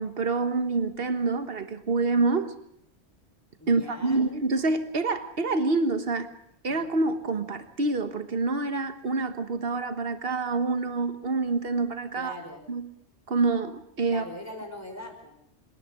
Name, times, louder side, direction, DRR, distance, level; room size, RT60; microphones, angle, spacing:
voice 1, 0.0-2.5 3.7-6.3 6.6-12.4 12.7-12.8 13.3-14.2, right 3 dB, 50° right, 10 dB, 1.6 m, -27 dB
voice 2, 3.6-4.2 12.2-12.6 14.1-15.3, left 1 dB, 10° left, 2 dB, 4.6 m, -41 dB
26.0 x 11.0 x 9.7 m, 0.73 s
omnidirectional pair, 1.3 m